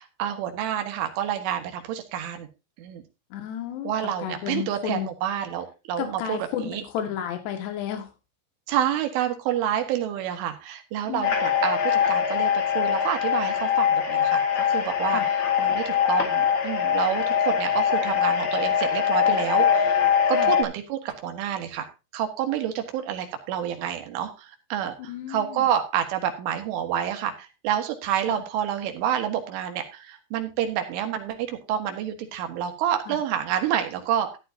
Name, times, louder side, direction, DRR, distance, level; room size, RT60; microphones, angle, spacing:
voice 1, 0.0-2.5 2.8-3.0 3.8-6.8 8.7-21.9 22.1-34.4, right 10 dB, 80° right, 6 dB, 4.1 m, -28 dB
voice 2, 3.3-3.9 4.2-5.1 6.0-8.1 11.1-11.3 15.1-15.3 20.3-20.5 25.1-25.7 28.3-28.4 33.1-33.2, left 9 dB, 65° left, 6 dB, 3.8 m, -32 dB
sound 1, 11.2-20.6, left 8 dB, 50° left, 1.4 m, -23 dB
13.5 x 10.5 x 2.7 m, 0.27 s
omnidirectional pair, 5.5 m